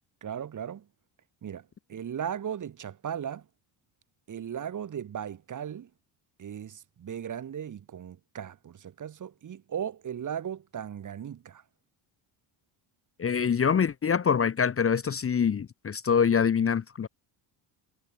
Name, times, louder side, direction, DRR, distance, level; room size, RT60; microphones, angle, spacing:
voice 1, 0.2-0.8 1.4-3.4 4.3-5.9 6.4-11.6, right 9 dB, 35° right, 1.1 m, -37 dB
voice 2, 13.2-17.1, left 7 dB, 25° left, 0.8 m, -25 dB
cardioid pair, 85°, 50 cm